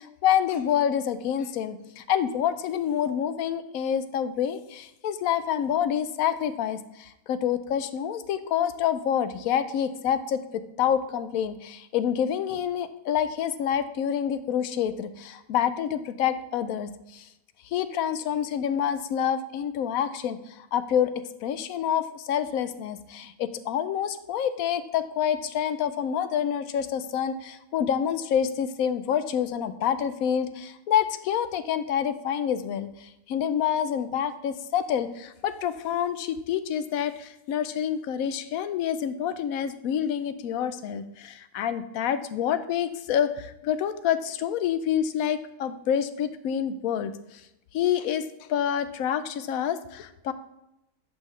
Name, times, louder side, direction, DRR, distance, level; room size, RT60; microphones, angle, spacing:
voice 1, 0.0-17.2 17.7-21.1 21.4-47.1 47.7-50.3, left 9 dB, 90° left, 12 dB, 1.1 m, -27 dB
10.0 x 5.6 x 3.2 m, 0.88 s
omnidirectional pair, 1.4 m